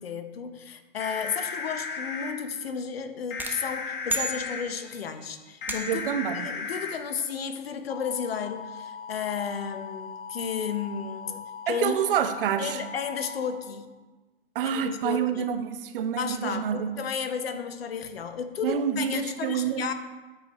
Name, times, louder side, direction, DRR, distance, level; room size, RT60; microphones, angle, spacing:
voice 1, 0.0-6.0 6.3-12.0 12.6-13.9 14.6-15.5 16.2-19.9, left 6 dB, 75° left, 10 dB, 0.8 m, -33 dB
sound 1, 1.0-2.3 3.3-4.6 5.6-6.9 7.9-13.5, left 5 dB, 55° left, 1.2 m, -37 dB
sound 2, 3.4-5.0 5.7-6.2, right 2 dB, 5° right, 0.8 m, -34 dB
voice 2, 5.9-6.5 11.7-12.8 14.5-16.9 18.6-19.9, right 8 dB, 60° right, 9 dB, 0.8 m, -27 dB
13.0 x 4.8 x 3.1 m, 1.2 s
figure-of-eight pair, 100°, 31 cm